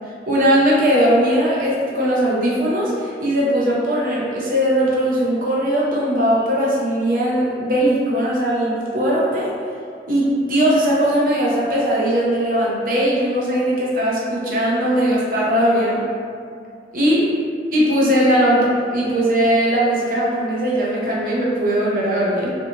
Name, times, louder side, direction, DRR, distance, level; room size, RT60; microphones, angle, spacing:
voice 1, 0.3-9.5 10.1-16.0 16.9-17.2 17.7-22.5, equal, 50° right, -5 dB, 0.6 m, -19 dB
2.5 x 2.2 x 2.9 m, 2.3 s
head